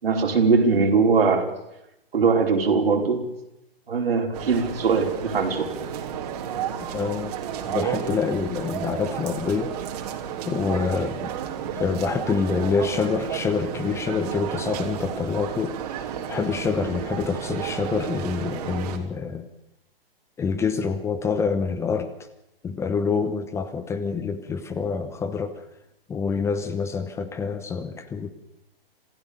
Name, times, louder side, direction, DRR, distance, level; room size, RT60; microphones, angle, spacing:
voice 1, 0.0-1.5 2.1-3.3 3.9-5.7, right 4 dB, 75° right, 2 dB, 4.8 m, -21 dB
sound 1, 4.3-19.0, right 8 dB, 40° right, 3.3 m, -32 dB
voice 2, 6.9-7.3 7.7-9.7 10.4-11.3 11.7-19.5 20.4-22.1 22.6-25.7 26.1-28.3, left 5 dB, 10° left, 12 dB, 0.9 m, -26 dB
27.0 x 15.5 x 7.0 m, 0.85 s
hypercardioid pair, 145°, 30 cm